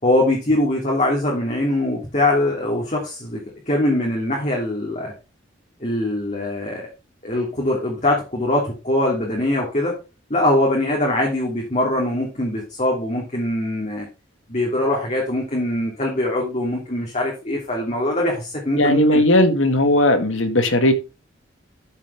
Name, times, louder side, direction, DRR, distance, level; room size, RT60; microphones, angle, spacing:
voice 1, 0.0-5.1 5.8-6.9 7.2-10.0 10.3-14.1 14.5-19.2, left 1 dB, 35° left, 2.9 m, -22 dB
voice 2, 18.8-20.9, left 1 dB, 80° left, 1.9 m, -17 dB
12.5 x 7.4 x 3.5 m
head